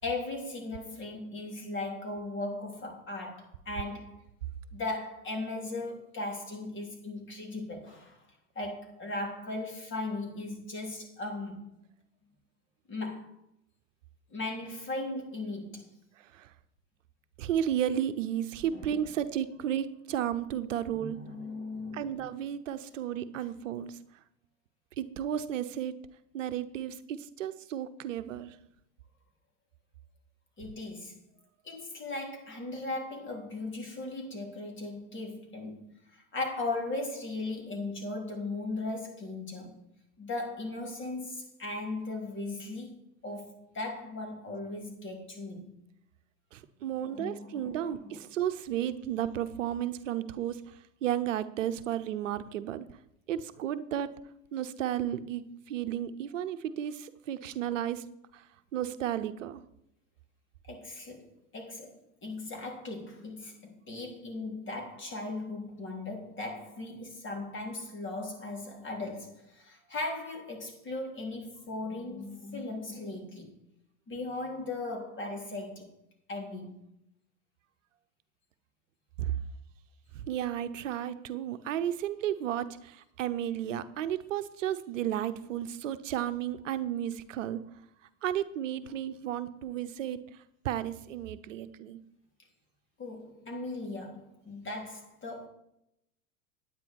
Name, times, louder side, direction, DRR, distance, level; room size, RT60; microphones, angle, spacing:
voice 1, 0.0-4.2 4.7-8.2 8.6-11.7 12.9-13.3 14.3-15.9 18.7-19.1 20.9-22.2 30.6-31.2 31.6-39.8 40.2-43.0 43.2-45.7 47.0-48.1 60.7-73.6 74.1-75.9 76.3-76.8 93.0-95.5, left 2 dB, 30° left, 3.5 m, -38 dB
voice 2, 17.4-21.2 21.9-23.9 25.0-25.9 26.3-28.5 46.5-50.6 51.0-52.9 53.3-54.1 54.5-58.0 58.7-59.6 79.2-79.3 80.1-87.6 88.2-90.2 90.6-92.0, right 10 dB, 80° right, 0.8 m, -33 dB
9.6 x 9.5 x 4.6 m
hypercardioid pair, 95°, 38 cm